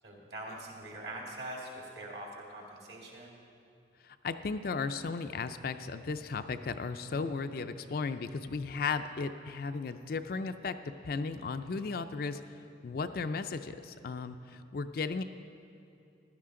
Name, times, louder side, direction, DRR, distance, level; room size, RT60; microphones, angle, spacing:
voice 1, 0.0-3.4, right 1 dB, 60° right, -1 dB, 2.1 m, -43 dB
voice 2, 4.0-10.8 11.0-12.4 12.8-15.2, left 4 dB, 50° left, 9 dB, 0.4 m, -35 dB
15.5 x 11.5 x 3.7 m, 2.7 s
head